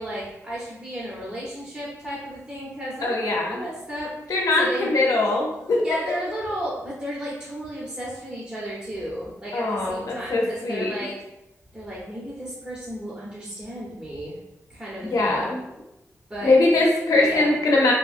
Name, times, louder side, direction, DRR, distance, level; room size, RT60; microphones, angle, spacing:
voice 1, 0.0-4.9 5.8-11.1 11.7-14.3 14.7-15.5 16.3-16.5 17.1-17.5, equal, 20° right, -7 dB, 0.7 m, -34 dB
voice 2, 3.0-3.6 4.3-6.2 9.5-10.9 15.1-15.6 16.4-17.9, left 2 dB, 85° left, -1 dB, 0.6 m, -21 dB
2.9 x 2.6 x 2.5 m, 0.89 s
wide cardioid pair, 95°, 6 cm